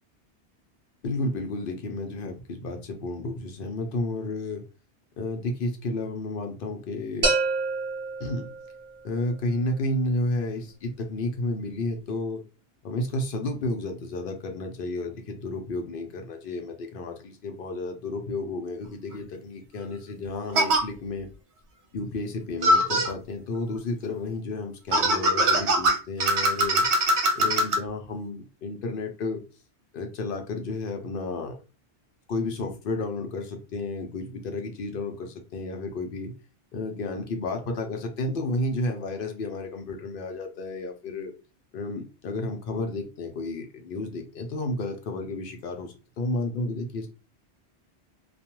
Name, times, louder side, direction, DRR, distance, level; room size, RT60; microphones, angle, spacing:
voice 1, 1.0-4.6 5.2-7.3 8.2-8.5 9.0-12.4 12.8-21.3 21.9-26.9 27.4-29.4 29.9-31.6 32.3-36.3 36.7-41.3 41.7-47.1, left 2 dB, 60° left, 0.7 m, -32 dB
sound 1, 7.2-9.1, right 3 dB, 55° right, 0.9 m, -27 dB
sound 2, 19.1-19.2 20.5-20.8 22.6-23.1 24.9-27.8, right 1 dB, 90° right, 1.0 m, -22 dB
2.3 x 2.2 x 2.9 m
omnidirectional pair, 1.1 m